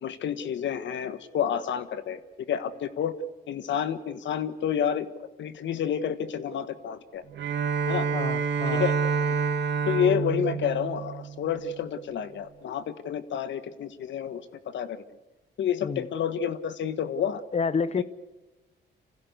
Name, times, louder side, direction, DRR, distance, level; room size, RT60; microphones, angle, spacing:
voice 1, 0.0-2.2 2.5-3.1 3.5-5.1 5.4-7.2 7.9-8.1 8.7-8.9 9.9-15.0 15.6-17.4, left 8 dB, 70° left, 12 dB, 1.5 m, -29 dB
Bowed string instrument, 7.3-11.8, right 6 dB, 65° right, 2.3 m, -28 dB
voice 2, 8.1-8.8 15.8-16.1 17.5-18.0, left 5 dB, 35° left, 17 dB, 1.0 m, -29 dB
26.5 x 16.0 x 8.2 m, 1.1 s
cardioid pair, 90°, 20 cm